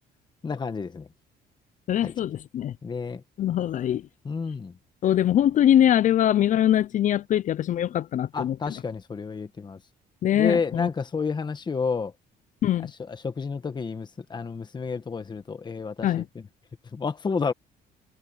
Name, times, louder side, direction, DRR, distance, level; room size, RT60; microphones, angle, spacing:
voice 1, 0.4-1.1 2.0-2.1 2.8-3.2 4.2-4.7 8.3-9.8 10.3-12.1 13.1-16.2 16.9-17.5, left 5 dB, 25° left, 1.5 m, -30 dB
voice 2, 1.9-2.7 3.4-4.1 5.0-8.8 10.2-10.9 12.6-12.9 16.0-16.3, left 11 dB, 50° left, 0.5 m, -22 dB
cardioid pair, 110°, 17 cm